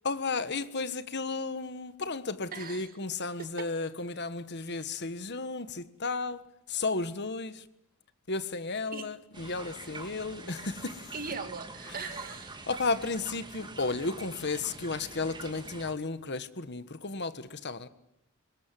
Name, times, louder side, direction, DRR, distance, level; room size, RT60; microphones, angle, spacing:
voice 1, 0.0-6.4 6.7-7.6 8.3-11.1 11.9-12.2 12.7-17.9, left 3 dB, 55° left, 1.5 m, -33 dB
voice 2, 2.5-2.9 3.6-3.7 8.9-9.1 11.1-12.7, right 5 dB, 45° right, 2.1 m, -39 dB
sound 1, 9.3-15.9, right 3 dB, 20° right, 2.6 m, -45 dB
25.5 x 22.0 x 9.3 m
head